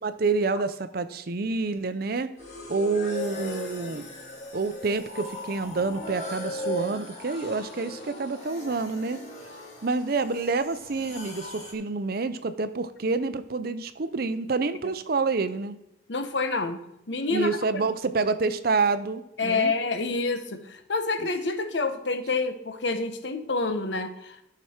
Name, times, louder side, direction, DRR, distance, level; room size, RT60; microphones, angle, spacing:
voice 1, 0.0-2.3 2.7-4.1 4.5-9.2 9.8-15.8 17.3-19.7, right 4 dB, 55° right, 12 dB, 0.6 m, -28 dB
sound 1, 2.4-11.7, left 1 dB, 35° left, 2.1 m, -38 dB
voice 2, 16.1-16.8 17.1-17.8 19.4-24.4, left 3 dB, 70° left, 8 dB, 1.0 m, -28 dB
13.5 x 6.1 x 4.4 m, 0.83 s
head